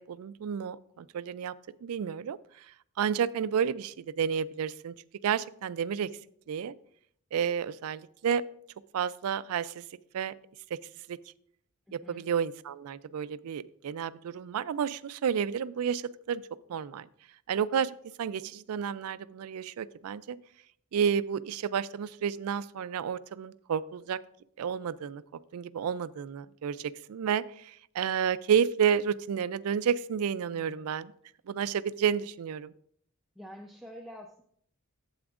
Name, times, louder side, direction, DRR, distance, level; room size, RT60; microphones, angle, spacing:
voice 1, 0.0-1.5 1.8-2.7 3.0-4.9 5.2-6.1 6.5-6.7 7.3-8.4 8.9-9.8 10.1-10.3 11.1-11.2 11.9-16.4 16.7-17.1 17.5-17.9 18.2-20.4 20.9-24.2 24.6-25.2 25.5-31.1 31.5-32.7, right 7 dB, 80° right, 16 dB, 0.4 m, -31 dB
voice 2, 11.9-12.3 30.5-30.8 33.4-34.4, equal, ahead, 1 dB, 0.4 m, -47 dB
12.0 x 7.9 x 2.4 m, 0.66 s
head